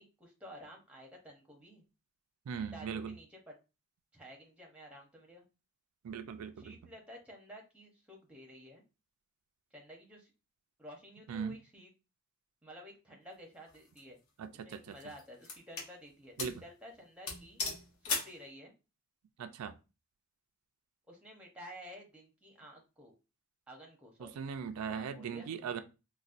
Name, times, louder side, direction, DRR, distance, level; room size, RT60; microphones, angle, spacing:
voice 1, 0.0-1.8 2.6-3.6 4.1-5.5 6.6-8.8 9.7-10.3 10.8-11.9 12.6-14.2 14.6-17.6 18.0-18.7 21.1-23.1 23.7-24.4 24.9-25.8, equal, 5° right, 0.7 m, -52 dB
voice 2, 2.5-3.1 6.0-6.7 11.3-11.6 14.4-14.9 16.4-16.5 19.4-19.7 24.2-25.8, right 6 dB, 90° right, 0.4 m, -39 dB
sound 1, 13.7-14.0 14.7-15.9 16.4-16.6 16.9-17.0 17.3-18.4, left 4 dB, 80° left, 1.0 m, -38 dB
4.0 x 2.2 x 2.4 m
head